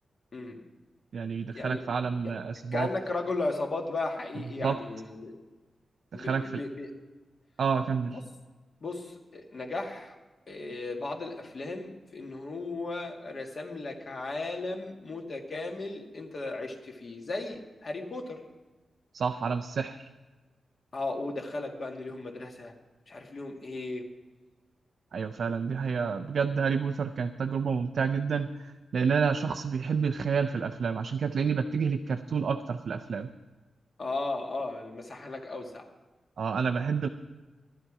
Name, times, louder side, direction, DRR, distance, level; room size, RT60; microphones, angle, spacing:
voice 1, 1.1-2.9 4.6-4.8 6.1-6.6 7.6-8.2 19.1-20.0 25.1-33.3 36.4-37.1, right 6 dB, 65° right, 5 dB, 0.5 m, -29 dB
voice 2, 2.7-5.3 6.1-6.9 8.1-8.2 8.8-10.1 10.5-18.4 20.9-22.7 23.1-24.1 34.0-35.9, left 2 dB, 45° left, 1 dB, 1.7 m, -35 dB
16.0 x 11.5 x 4.9 m, 1.2 s
wide cardioid pair, 155°, 0 cm